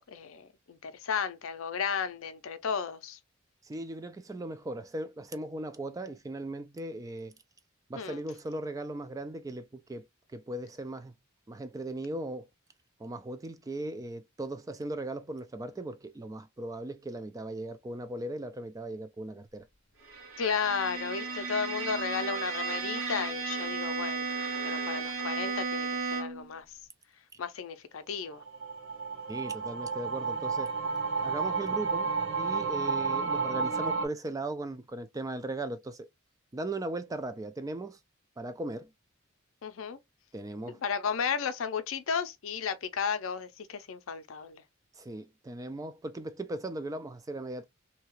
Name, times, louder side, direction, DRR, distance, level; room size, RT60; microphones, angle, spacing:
voice 1, 0.0-3.2 7.9-8.2 20.4-24.3 24.6-26.6 27.4-28.4 39.6-40.0 40.8-44.6, left 6 dB, 75° left, 0.5 m, -34 dB
voice 2, 3.6-7.3 7.9-10.1 10.3-11.1 11.5-12.5 13.0-19.7 29.3-30.7 31.2-32.1 32.4-36.1 36.5-38.0 38.4-38.9 40.3-40.8 45.0-47.6, right 2 dB, 15° right, 0.3 m, -38 dB
Bowed string instrument, 20.0-26.5, right 4 dB, 90° right, 1.3 m, -34 dB
sound 1, 28.3-34.1, right 4 dB, 60° right, 0.9 m, -31 dB
2.8 x 2.3 x 2.9 m
head